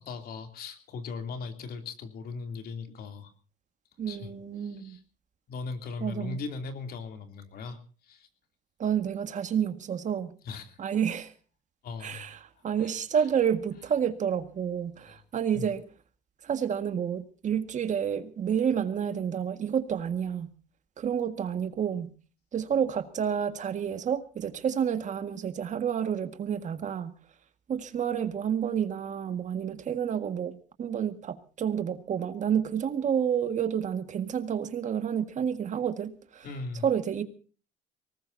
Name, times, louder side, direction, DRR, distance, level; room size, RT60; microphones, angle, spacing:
voice 1, 0.0-3.3 4.1-4.3 4.6-5.0 5.5-8.3 10.4-10.8 11.8-12.3 12.8-13.0 15.1-15.2 15.5-15.7 36.4-36.9, left 4 dB, 65° left, 7 dB, 3.0 m, -38 dB
voice 2, 4.0-5.0 6.0-6.4 8.8-10.3 10.8-11.3 12.0-15.8 16.4-20.5 21.0-22.1 22.5-27.1 27.7-36.5 36.8-37.2, right 8 dB, 45° right, 9 dB, 1.8 m, -29 dB
23.5 x 19.5 x 2.7 m, 0.37 s
cardioid pair, 110°, 17 cm